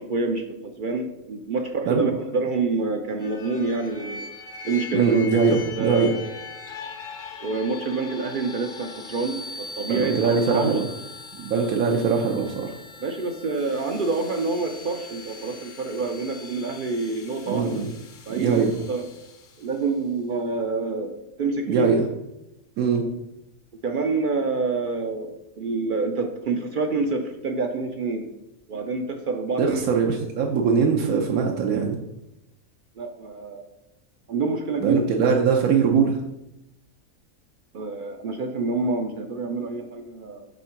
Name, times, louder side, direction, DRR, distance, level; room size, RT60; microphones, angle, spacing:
voice 1, 0.0-4.3 4.6-5.2 5.8-6.1 7.4-10.8 11.5-11.7 13.0-17.7 18.3-18.6 18.9-19.1 19.6-21.9 23.8-28.3 28.7-29.8 33.0-33.7 34.3-35.3 37.7-40.5, right 3 dB, 65° right, 5 dB, 0.5 m, -27 dB
sound 1, 3.2-19.9, left 4 dB, 50° left, 0.7 m, -41 dB
voice 2, 4.9-6.1 9.9-10.9 11.3-12.7 17.5-17.9 18.4-18.8 21.7-22.0 22.8-23.0 29.6-32.0 34.8-36.2, right 5 dB, 85° right, 1 dB, 1.1 m, -22 dB
5.2 x 3.7 x 5.6 m, 0.89 s
omnidirectional pair, 1.4 m